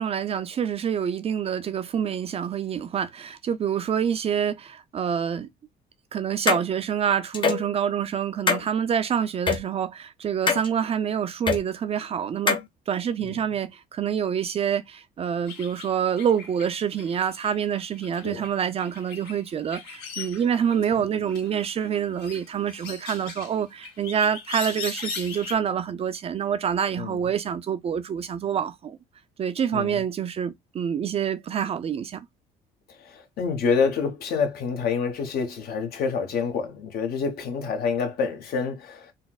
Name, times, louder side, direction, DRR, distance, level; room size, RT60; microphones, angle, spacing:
voice 1, 0.0-5.5 6.1-12.6 12.9-29.0 29.4-32.2, right 8 dB, 35° right, 0.4 m, -27 dB
sound 1, 6.5-6.6 7.3-7.7 8.5-8.6 9.5-9.6 10.5-10.7 11.5-11.6 12.5-12.6, left 5 dB, 30° left, 0.5 m, -22 dB
sound 2, 15.5-21.0 21.3-25.5, left 5 dB, 85° left, 1.7 m, -40 dB
voice 2, 33.0-39.1, left 5 dB, 65° left, 1.0 m, -27 dB
4.0 x 2.0 x 2.2 m
cardioid pair, 110°, 17 cm